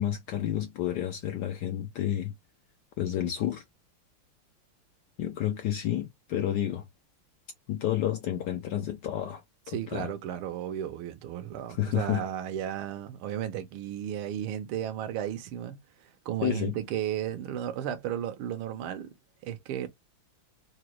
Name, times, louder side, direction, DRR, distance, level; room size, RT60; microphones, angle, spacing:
voice 1, 0.0-2.3 3.0-3.6 5.2-6.8 7.7-10.1 11.7-12.2 16.4-16.7, left 11 dB, 75° left, 0.9 m, -30 dB
voice 2, 9.7-19.1 19.4-19.9, right 10 dB, 80° right, 1.6 m, -34 dB
4.9 x 2.2 x 2.9 m
omnidirectional pair, 2.4 m